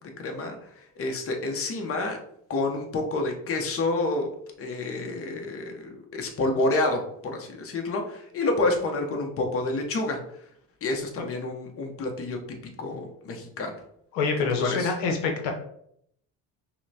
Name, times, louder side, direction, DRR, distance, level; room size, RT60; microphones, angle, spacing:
voice 1, 0.0-2.2 2.5-4.3 4.6-10.2 10.8-12.4 12.8-13.7 14.6-14.9, left 2 dB, 35° left, 3 dB, 0.8 m, -29 dB
voice 2, 14.1-15.5, left 5 dB, 80° left, 3 dB, 0.8 m, -26 dB
5.5 x 2.2 x 2.7 m, 0.71 s
supercardioid pair, 85°, 39 cm